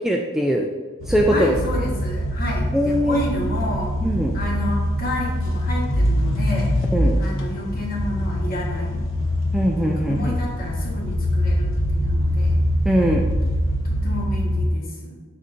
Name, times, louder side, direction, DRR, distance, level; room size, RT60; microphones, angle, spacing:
voice 1, 0.0-0.7 1.1-1.6 2.7-3.2 4.0-4.3 6.9-7.2 9.5-10.3 12.9-13.3, equal, ahead, 0 dB, 0.3 m, -21 dB
sound 1, 1.0-14.7, equal, 70° left, 0.9 m, -23 dB
voice 2, 1.3-3.9 4.3-6.7 7.2-9.0 9.8-12.6 13.8-15.2, left 1 dB, 45° left, -2 dB, 1.3 m, -30 dB
6.7 x 5.5 x 2.6 m, 1.4 s
head